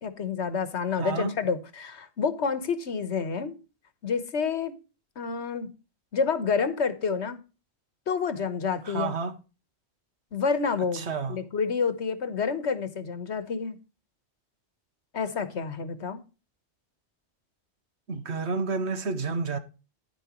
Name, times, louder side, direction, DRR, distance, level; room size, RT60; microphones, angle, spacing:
voice 1, 0.0-3.6 4.0-4.7 5.2-5.7 6.1-7.4 8.1-9.1 10.3-13.8 15.1-16.2, left 5 dB, 80° left, 1.5 m, -29 dB
voice 2, 1.0-1.4 8.9-9.3 10.9-11.4 18.1-19.6, right 4 dB, 75° right, 1.5 m, -30 dB
10.0 x 9.8 x 3.0 m
omnidirectional pair, 1.1 m